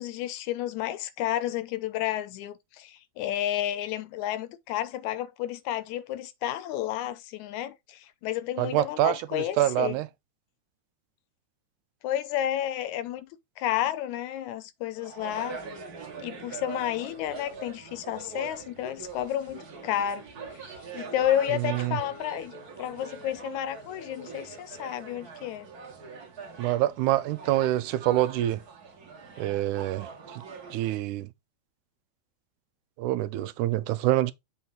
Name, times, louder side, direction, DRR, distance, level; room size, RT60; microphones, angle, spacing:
voice 1, 0.0-10.0 12.0-13.3 13.6-15.6 16.2-20.6 20.9-25.7, left 12 dB, 80° left, 2.0 m, -31 dB
voice 2, 8.6-10.1 21.6-22.0 26.6-28.6 29.4-30.4 30.7-31.3 33.0-34.3, right 15 dB, 90° right, 2.1 m, -26 dB
sound 1, 14.9-31.0, right 5 dB, 40° right, 1.6 m, -43 dB
7.1 x 4.1 x 3.8 m
omnidirectional pair, 3.4 m